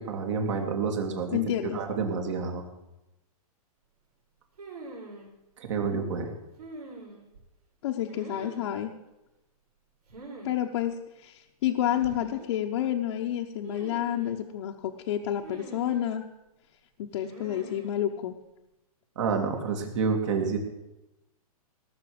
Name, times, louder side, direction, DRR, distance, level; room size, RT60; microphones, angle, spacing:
voice 1, 0.0-1.4 1.7-2.6 5.6-6.3 19.2-20.6, right 5 dB, 50° right, 3 dB, 2.7 m, -29 dB
voice 2, 1.3-1.8 7.8-8.9 10.4-16.2 17.0-18.4, left 11 dB, 50° left, 0 dB, 1.0 m, -29 dB
sound 1, 4.6-5.3 6.6-7.4 8.1-8.8 10.1-10.6 10.8-10.9 11.8-12.5 13.6-14.4 15.4-16.2 17.2-17.9, right 2 dB, 90° right, 5.6 m, -44 dB
18.0 x 6.5 x 7.9 m, 0.95 s
hypercardioid pair, 150°, 19 cm